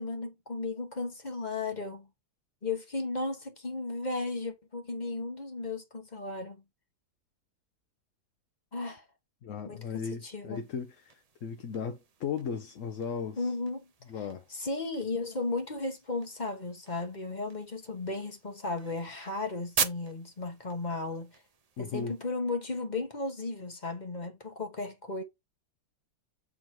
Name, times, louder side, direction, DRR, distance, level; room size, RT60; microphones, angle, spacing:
voice 1, 0.0-2.1 2.6-6.6 8.7-9.0 9.6-10.6 13.4-13.9 14.5-21.4 21.8-25.2, left 3 dB, 30° left, 1.2 m, -35 dB
voice 2, 9.4-13.5 14.1-14.4 21.8-22.1, left 6 dB, 60° left, 1.1 m, -36 dB
sound 1, 10.5-22.3, right 5 dB, 55° right, 0.4 m, -42 dB
7.1 x 3.6 x 4.5 m
omnidirectional pair, 1.7 m